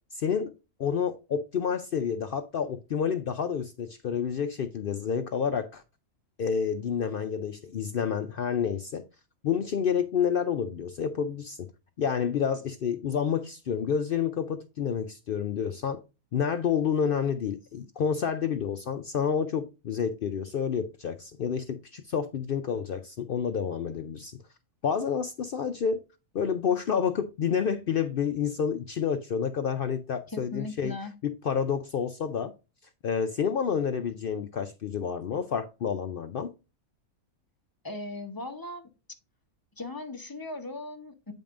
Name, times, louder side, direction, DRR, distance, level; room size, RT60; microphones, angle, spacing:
voice 1, 0.1-0.5 0.8-5.8 6.4-9.0 9.4-11.7 12.0-16.0 16.3-24.4 24.8-26.0 26.3-30.9 31.2-32.5 33.0-36.5, left 7 dB, 65° left, 0.5 m, -29 dB
voice 2, 30.3-31.1 37.8-38.9 39.8-41.3, left 2 dB, 20° left, 0.7 m, -38 dB
8.6 x 5.3 x 2.5 m
omnidirectional pair, 1.5 m